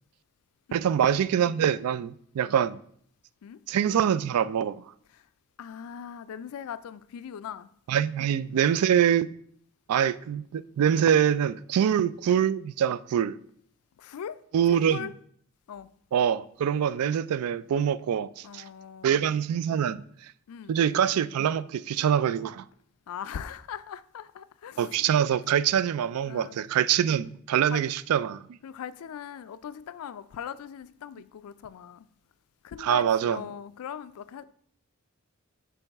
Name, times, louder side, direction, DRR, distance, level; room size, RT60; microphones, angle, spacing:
voice 1, 0.7-2.8 3.7-4.8 7.9-9.3 9.9-13.4 14.5-15.1 16.1-18.6 19.0-20.0 20.7-22.6 24.8-28.5 32.8-33.4, right 9 dB, 90° right, 0.3 m, -24 dB
voice 2, 5.6-7.7 11.8-12.0 14.0-14.4 14.7-15.1 15.7-15.9 18.4-19.2 20.5-20.8 23.1-25.0 26.2-26.6 27.7-27.9 28.6-32.1 32.6-34.4, left 8 dB, 80° left, 0.3 m, -40 dB
7.0 x 4.6 x 3.4 m
head